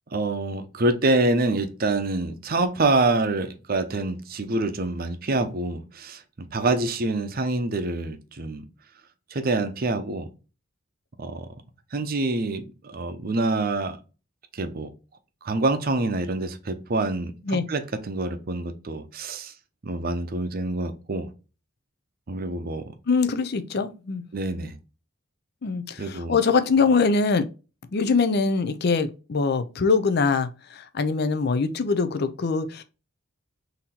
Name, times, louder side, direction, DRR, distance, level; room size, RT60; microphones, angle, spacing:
voice 1, 0.1-6.2 6.5-8.6 9.3-10.3 11.2-11.5 11.9-14.0 14.5-14.9 15.4-19.5 19.8-21.3 22.3-22.9 24.3-24.8 26.0-26.4, right 2 dB, 45° right, 0.7 m, -26 dB
voice 2, 23.1-24.2 25.6-27.4 27.9-32.8, left 4 dB, 50° left, 0.5 m, -23 dB
3.9 x 2.8 x 4.2 m
head